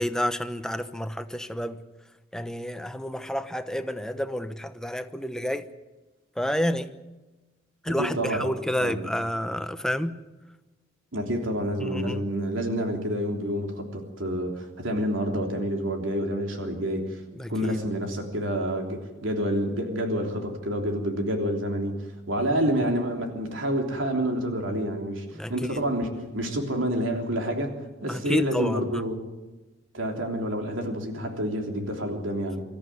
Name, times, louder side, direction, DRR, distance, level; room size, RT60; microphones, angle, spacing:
voice 1, 0.0-1.8 2.3-5.7 6.4-6.9 7.8-10.2 11.8-12.2 17.4-17.8 25.3-25.5 28.1-29.0, equal, 5° left, 1.0 m, -29 dB
voice 2, 7.9-8.5 8.8-9.1 11.1-17.2 17.5-22.0 22.3-29.2 29.9-32.6, equal, 90° right, 3.3 m, -28 dB
24.5 x 14.0 x 9.5 m
head